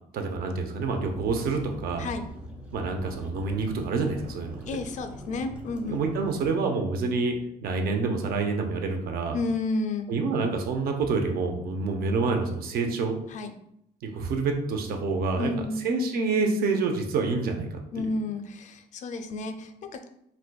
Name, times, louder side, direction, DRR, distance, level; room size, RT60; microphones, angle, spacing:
voice 1, 0.1-2.1 2.7-4.6 5.9-7.4 7.6-9.4 10.1-13.2 14.0-15.5 15.8-17.7 18.0-18.1, right 4 dB, 65° right, 4 dB, 0.6 m, -27 dB
sound 1, 0.8-6.4, equal, 5° right, 0.6 m, -43 dB
voice 2, 4.7-6.0 9.3-10.1 13.3-13.5 15.4-15.9 17.9-20.1, left 3 dB, 45° left, 8 dB, 0.4 m, -31 dB
4.3 x 2.5 x 2.2 m, 0.77 s
cardioid pair, 110°, 17 cm